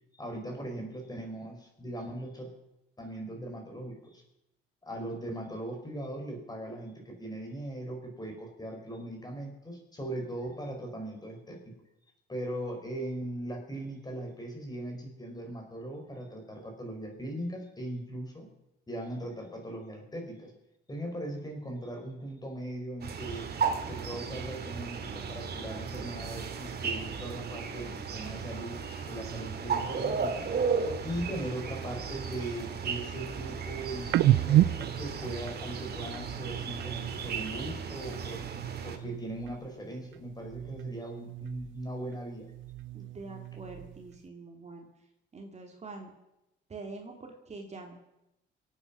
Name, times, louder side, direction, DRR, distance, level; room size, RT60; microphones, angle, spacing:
voice 1, 0.1-2.5 3.0-4.2 4.8-11.7 12.3-18.5 18.9-20.5 20.9-23.5 23.9-30.5 31.0-38.4 38.8-42.5, right 1 dB, 20° left, 2 dB, 5.0 m, -39 dB
sound 1, 23.0-39.0, right 5 dB, 55° right, 2.1 m, -35 dB
sound 2, 34.1-37.7 38.0-39.8 40.1-42.0 42.3-44.2, right 14 dB, 75° right, 0.5 m, -31 dB
voice 2, 42.9-44.9 45.3-46.1 46.7-47.9, right 3 dB, 35° right, 2 dB, 2.5 m, -45 dB
23.5 x 8.9 x 6.2 m, 0.89 s
cardioid pair, 90°, 20 cm